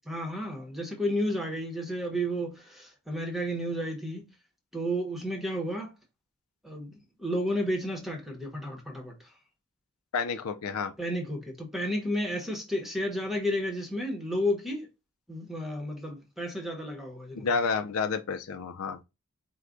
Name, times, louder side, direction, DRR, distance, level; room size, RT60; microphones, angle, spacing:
voice 1, 0.1-4.2 4.7-5.9 6.6-6.9 7.2-9.2 11.0-14.9 15.3-17.5, equal, ahead, 0.9 m, -32 dB
voice 2, 10.1-10.9 17.4-19.0, left 5 dB, 80° left, 0.5 m, -30 dB
4.7 x 2.2 x 3.7 m
head